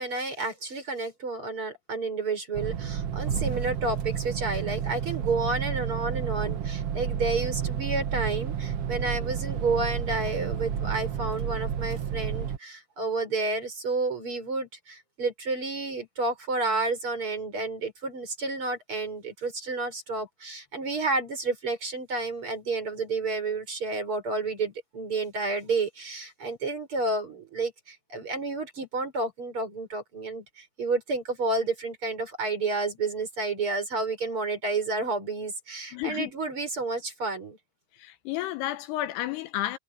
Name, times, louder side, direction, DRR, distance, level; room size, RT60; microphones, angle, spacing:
voice 1, 0.0-37.6, right 3 dB, 30° right, 6.0 m, -30 dB
sound 1, 2.5-12.6, right 8 dB, 75° right, 1.3 m, -31 dB
voice 2, 35.9-36.3 38.0-39.8, left 14 dB, 80° left, 2.8 m, -31 dB
omnidirectional pair, 4.8 m